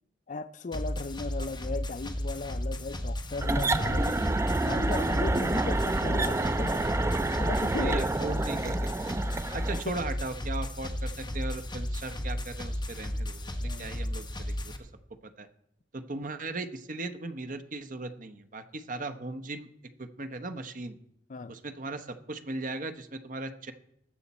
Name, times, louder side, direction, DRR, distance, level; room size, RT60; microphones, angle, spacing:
voice 1, 0.3-4.2 4.6-6.9 7.4-8.1 9.9-10.1 13.6-13.9 21.3-21.5, left 3 dB, 45° left, 0.5 m, -36 dB
sound 1, 0.7-14.8, left 1 dB, 25° left, 1.1 m, -34 dB
sound 2, 3.4-9.8, right 2 dB, 15° right, 0.4 m, -28 dB
voice 2, 7.8-8.9 9.5-14.7 15.2-15.5 15.9-19.7 20.0-21.0 21.5-23.7, right 2 dB, 45° right, 0.9 m, -38 dB
19.5 x 7.2 x 4.2 m
head